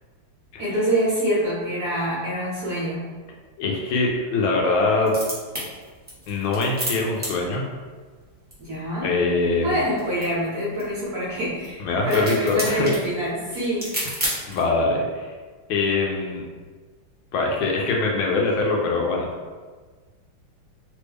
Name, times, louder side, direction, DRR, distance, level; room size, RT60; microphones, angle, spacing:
voice 1, 0.6-3.0 8.6-9.1 9.6-13.9, equal, 60° right, -7 dB, 1.0 m, -25 dB
voice 2, 3.6-5.2 6.3-7.7 9.0-9.8 11.8-12.9 14.5-15.3 15.7-16.4 17.3-19.3, left 3 dB, 90° left, 0 dB, 1.4 m, -23 dB
sound 1, 5.0-14.8, equal, 10° right, 0.4 m, -35 dB
3.4 x 2.1 x 3.3 m, 1.4 s
omnidirectional pair, 2.2 m